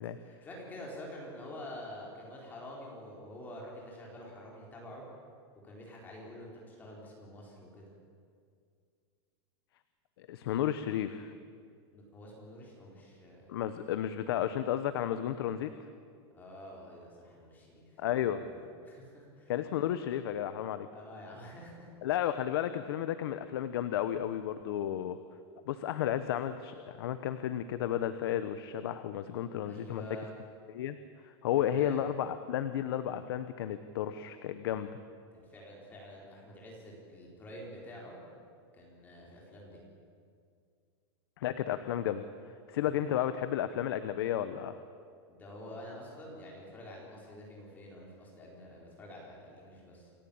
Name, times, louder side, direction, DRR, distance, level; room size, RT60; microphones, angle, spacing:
voice 1, 0.3-5.0 5.6-7.9 11.9-13.6 16.3-19.5 20.9-21.9 29.6-30.3 31.6-32.0 35.3-38.2 38.7-39.8 45.3-50.1, left 1 dB, 10° left, -2 dB, 4.6 m, -48 dB
voice 2, 10.2-11.3 13.5-15.7 18.0-18.4 19.5-20.9 22.0-25.2 25.7-30.1 30.7-31.0 31.2-34.9 41.4-42.2 42.7-44.8, left 11 dB, 60° left, 11 dB, 1.0 m, -33 dB
28.0 x 14.5 x 8.8 m, 2.2 s
supercardioid pair, 175°, 14 cm